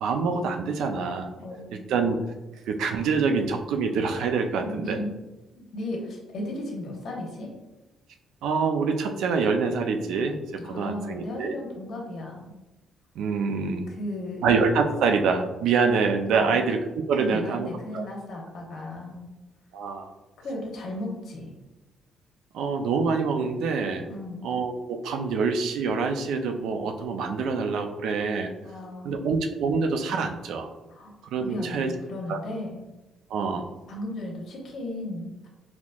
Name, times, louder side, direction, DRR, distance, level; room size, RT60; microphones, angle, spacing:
voice 1, 0.0-1.3 1.7-2.2 2.7-5.0 8.4-11.5 13.2-13.9 14.4-16.8 17.1-17.7 17.9-18.0 19.7-20.1 22.5-24.1 24.4-28.5 29.0-30.7 31.3-31.9 32.3-32.4 33.3-33.7, right 5 dB, 80° right, 5 dB, 0.4 m, -26 dB
voice 2, 1.4-1.8 4.6-5.1 5.5-7.5 10.5-12.5 13.9-14.5 16.3-16.6 17.2-19.3 20.4-21.5 24.1-24.5 28.6-29.2 30.9-31.1 31.4-32.8 33.9-35.5, left 1 dB, 65° left, -1 dB, 1.0 m, -35 dB
4.0 x 2.9 x 2.3 m, 1.1 s
cardioid pair, 90°, 0 cm